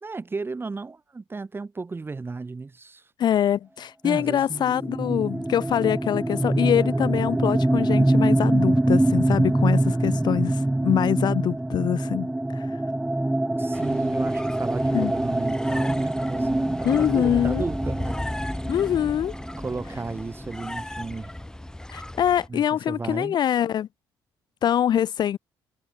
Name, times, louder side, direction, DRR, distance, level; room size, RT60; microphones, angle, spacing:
voice 1, 0.0-3.0 4.0-4.6 13.5-18.2 18.5-18.6 19.6-21.3 22.5-23.4, right 3 dB, 25° right, 3.6 m, -34 dB
voice 2, 3.2-12.6 14.9-15.1 16.8-17.6 18.7-19.3 21.9-23.9 24.6-25.4, left 10 dB, 55° left, 0.5 m, -24 dB
sound 1, 4.6-20.2, right 1 dB, 10° right, 2.7 m, -24 dB
sound 2, 13.7-22.5, left 1 dB, 10° left, 1.5 m, -35 dB
cardioid pair, 80°, 9 cm